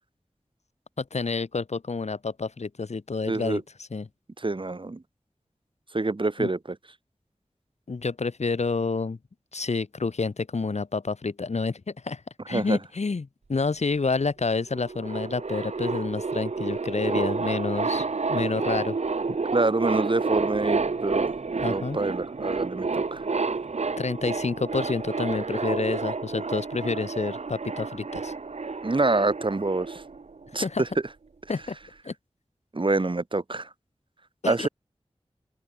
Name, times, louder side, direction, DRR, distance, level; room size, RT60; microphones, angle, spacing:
voice 1, 1.0-4.1 6.4-6.5 7.9-9.2 9.5-12.2 12.5-19.0 19.3-19.4 21.6-22.0 24.0-28.3 30.6-30.8 31.5-31.8 32.0-32.1 34.4-34.7, left 4 dB, 90° left, 4.1 m, -29 dB
voice 2, 3.3-3.6 4.4-5.0 5.9-6.8 12.5-12.8 19.5-21.3 21.7-23.3 28.8-30.0 30.5-30.9 32.7-33.7 34.5-34.7, right 2 dB, 50° right, 2.2 m, -26 dB
sound 1, 14.7-30.6, right 4 dB, 90° right, 2.9 m, -30 dB
open air
wide cardioid pair, 60°, 11 cm